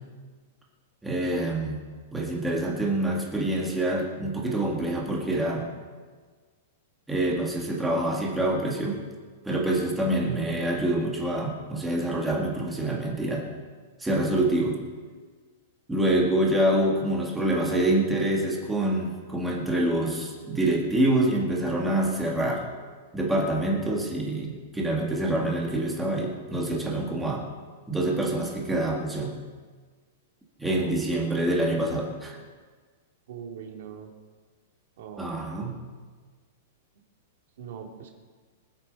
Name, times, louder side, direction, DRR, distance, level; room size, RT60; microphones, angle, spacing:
voice 1, 1.0-1.8 2.1-5.7 7.1-9.0 9.5-13.5 14.0-14.8 15.9-22.7 23.1-27.4 27.9-29.3 30.6-32.4 35.2-35.8, right 1 dB, 5° right, -2 dB, 2.0 m, -26 dB
voice 2, 30.6-31.0 33.3-34.1 35.0-35.3 37.6-38.1, right 7 dB, 55° right, 2 dB, 2.6 m, -41 dB
24.0 x 8.4 x 5.5 m, 1.5 s
supercardioid pair, 180°, 0 cm